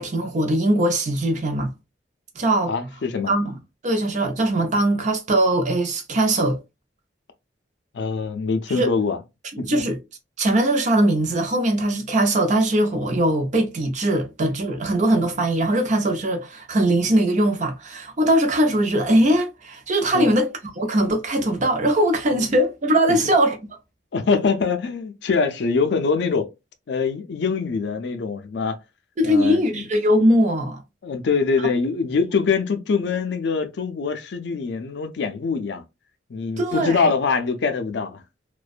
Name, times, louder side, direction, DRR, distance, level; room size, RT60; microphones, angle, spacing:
voice 1, 0.0-1.7 2.4-2.7 3.3-3.5 3.8-6.6 8.7-8.9 9.6-10.0 10.4-23.6 29.2-30.8 36.6-37.1, right 1 dB, 40° right, 0.5 m, -21 dB
voice 2, 2.7-3.3 7.9-9.2 9.6-9.8 20.1-20.3 24.1-26.5 26.9-28.8 29.2-29.6 31.0-35.8 36.3-38.2, left 5 dB, 65° left, 0.4 m, -23 dB
2.5 x 2.1 x 2.4 m
head